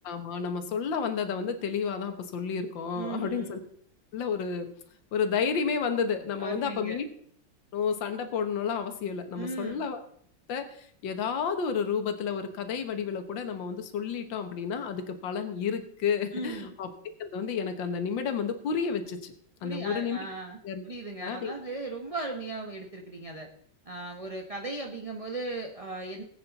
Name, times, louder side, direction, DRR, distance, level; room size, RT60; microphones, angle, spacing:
voice 1, 0.0-3.6 4.1-4.7 5.1-7.1 7.7-10.0 10.5-16.9 17.2-19.3 19.6-20.2 20.6-20.8 21.2-21.6, left 6 dB, 70° left, 8 dB, 1.9 m, -31 dB
voice 2, 2.9-3.5 6.4-7.0 9.4-9.9 16.3-16.7 19.6-20.6 20.8-23.5 23.8-26.2, right 2 dB, 25° right, 2 dB, 0.7 m, -37 dB
19.5 x 8.5 x 4.1 m, 0.63 s
omnidirectional pair, 2.1 m